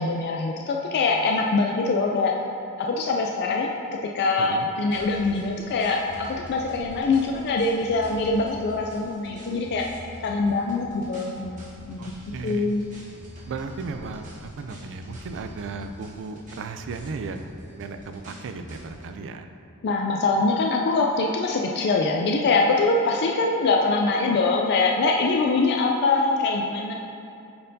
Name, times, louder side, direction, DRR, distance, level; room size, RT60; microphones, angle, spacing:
voice 1, 0.0-2.3 2.8-3.7 4.1-9.9 10.2-12.1 12.4-12.8 19.8-26.9, left 3 dB, 50° left, 1 dB, 0.3 m, -23 dB
voice 2, 4.4-4.7 12.0-12.8 13.5-19.5, right 4 dB, 55° right, 7 dB, 0.4 m, -35 dB
sound 1, 4.9-19.1, equal, 35° right, 1.2 m, -44 dB
8.6 x 4.4 x 2.7 m, 2.7 s
head